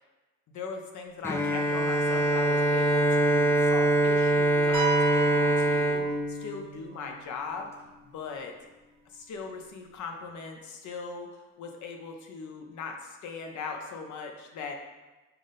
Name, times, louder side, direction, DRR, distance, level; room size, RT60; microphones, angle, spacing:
voice 1, 0.5-7.7 8.0-8.5 9.1-11.3 11.6-14.7, left 4 dB, 75° left, 3 dB, 0.7 m, -39 dB
Bowed string instrument, 1.2-7.3, right 1 dB, 10° left, 0.3 m, -24 dB
sound 1, 4.7-6.6, right 8 dB, 85° right, 0.9 m, -33 dB
5.8 x 2.1 x 3.9 m, 1.2 s
cardioid pair, 90°, 30 cm